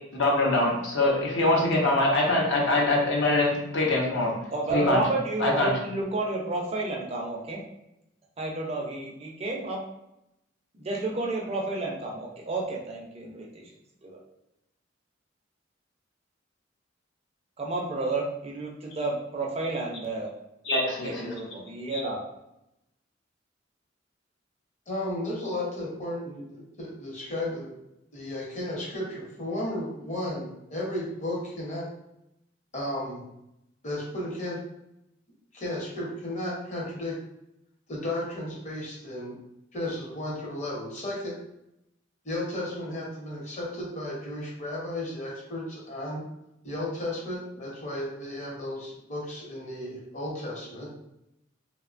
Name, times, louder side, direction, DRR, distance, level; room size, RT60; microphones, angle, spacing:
voice 1, 0.1-4.4 4.7-5.0 5.4-5.7 20.7-21.3 21.9-22.0, left 2 dB, 65° left, -2 dB, 0.7 m, -24 dB
voice 2, 4.5-7.6 8.4-9.8 10.7-13.7 14.0-14.2 17.6-20.3 21.0-22.2, right 2 dB, 30° right, -1 dB, 0.4 m, -31 dB
voice 3, 24.9-27.8 28.1-31.9 32.7-33.2 33.8-34.6 35.5-37.1 37.9-39.4 39.7-41.4 42.2-46.2 46.6-50.9, left 1 dB, 40° left, -4 dB, 0.8 m, -34 dB
2.7 x 2.1 x 2.4 m, 0.85 s
head